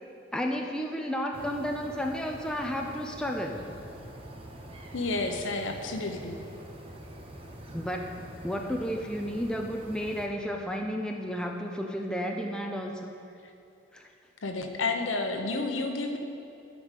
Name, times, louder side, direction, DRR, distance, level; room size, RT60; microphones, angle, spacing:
voice 1, 0.3-3.7 7.7-13.1 13.9-14.1, equal, 5° left, 1 dB, 0.4 m, -32 dB
sound 1, 1.3-10.3, right 1 dB, 30° right, 0.8 m, -45 dB
voice 2, 4.9-6.4 14.4-16.2, left 3 dB, 80° left, 5 dB, 0.8 m, -30 dB
9.8 x 5.1 x 6.6 m, 2.7 s
head